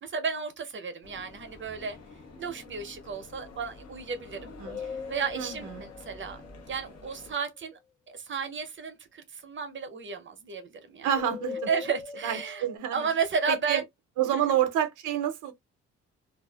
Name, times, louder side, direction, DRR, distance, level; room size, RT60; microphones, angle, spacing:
voice 1, 0.0-2.0 2.4-6.4 6.7-7.8 8.1-11.1 11.7-12.6 12.9-13.8 14.3-14.6, right 5 dB, 40° right, 0.6 m, -33 dB
sound 1, 1.0-7.3, left 3 dB, 60° left, 0.9 m, -48 dB
voice 2, 4.3-4.8 5.3-5.9 11.0-11.7 12.2-13.1 13.5-13.8 14.2-15.5, right 10 dB, 80° right, 0.6 m, -28 dB
sound 2, 4.6-7.1 11.1-12.8, left 5 dB, 25° left, 0.4 m, -40 dB
2.4 x 2.4 x 2.2 m
cardioid pair, 90°, 30 cm